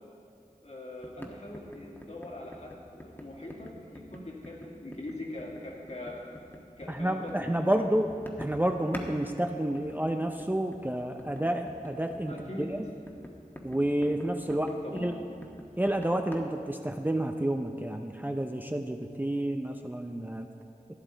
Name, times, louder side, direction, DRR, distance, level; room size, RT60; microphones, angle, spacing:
voice 1, 0.6-6.2 6.8-8.0 12.3-12.7 14.7-15.2, left 1 dB, 50° left, -2 dB, 2.0 m, -42 dB
sound 1, 1.0-9.1 9.4-16.4, left 1 dB, 15° left, 1.2 m, -46 dB
voice 2, 6.9-8.1 8.4-12.8 13.6-15.2 15.8-20.5, right 1 dB, 10° right, 4 dB, 0.5 m, -30 dB
12.5 x 10.0 x 3.9 m, 2.5 s
wide cardioid pair, 50°, 15 cm